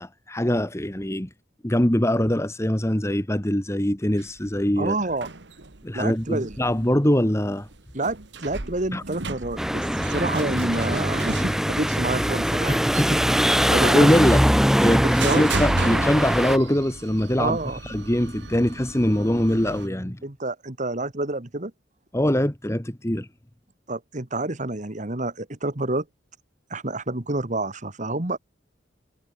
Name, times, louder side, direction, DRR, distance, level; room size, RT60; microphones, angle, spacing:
voice 1, 0.0-1.3 1.6-5.0 5.8-7.7 8.9-9.0 12.7-17.6 17.8-20.2 22.1-23.3, left 1 dB, 15° left, 1.5 m, -23 dB
sound 1, 4.2-19.9, right 3 dB, 65° right, 1.8 m, -36 dB
voice 2, 4.8-5.3 5.9-6.6 7.9-12.8 13.7-14.1 15.2-15.4 17.4-17.8 20.2-21.7 23.9-26.1 26.7-28.4, right 2 dB, 40° right, 2.0 m, -28 dB
sound 2, 9.6-16.6, equal, ahead, 1.2 m, -22 dB
head